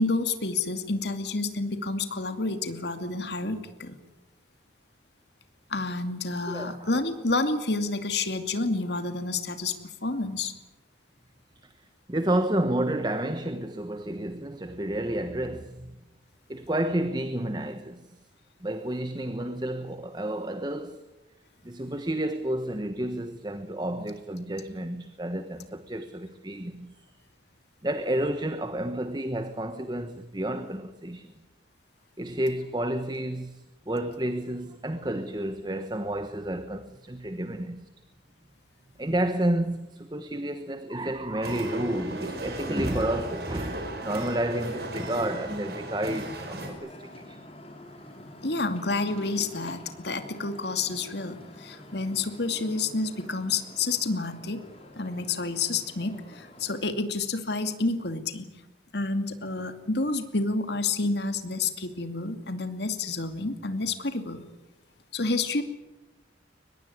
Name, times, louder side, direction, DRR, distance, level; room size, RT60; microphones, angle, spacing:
voice 1, 0.0-4.0 5.7-9.8 10.0-10.5 48.4-54.6 55.0-58.5 58.9-64.4 65.1-65.6, left 3 dB, 65° left, 2.5 m, -29 dB
voice 2, 6.5-6.9 11.6-11.7 12.1-16.0 16.5-18.2 18.6-21.0 21.6-27.1 27.8-31.3 32.2-37.9 39.0-47.4, right 1 dB, 25° right, 1.2 m, -30 dB
sound 1, 41.4-46.7, right 1 dB, 55° right, 5.9 m, -36 dB
sound 2, 46.6-56.8, left 1 dB, 30° left, 5.2 m, -47 dB
23.5 x 20.5 x 9.8 m
head